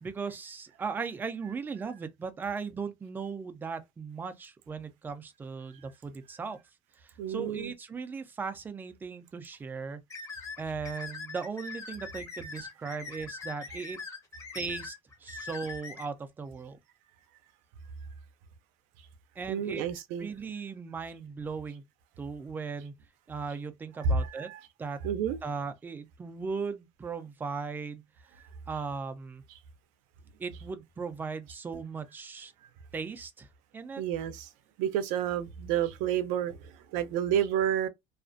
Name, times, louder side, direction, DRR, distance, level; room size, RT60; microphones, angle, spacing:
voice 1, 0.0-6.6 7.0-10.0 10.6-14.0 14.5-14.9 15.2-16.8 19.4-19.8 20.2-21.8 22.2-22.9 23.3-24.5 24.8-25.0 25.4-28.0 28.7-29.4 30.4-32.5 32.9-33.5 33.7-34.0, right 5 dB, 15° right, 0.3 m, -37 dB
voice 2, 7.2-7.7 19.5-20.3 24.0-24.6 25.0-25.4 34.0-34.5 34.8-37.9, right 8 dB, 75° right, 0.5 m, -30 dB
sound 1, 10.1-16.0, left 4 dB, 20° left, 0.7 m, -42 dB
2.4 x 2.1 x 2.4 m
cardioid pair, 155°, 14 cm